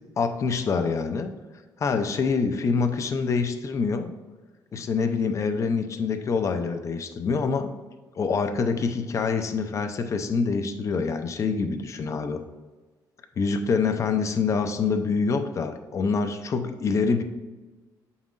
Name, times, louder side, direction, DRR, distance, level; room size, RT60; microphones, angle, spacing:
voice 1, 0.2-1.3 1.8-4.1 4.7-7.7 8.2-12.4 13.4-17.2, left 5 dB, 40° left, 7 dB, 0.6 m, -26 dB
7.0 x 5.5 x 2.5 m, 1.3 s
cardioid pair, 130°, 8 cm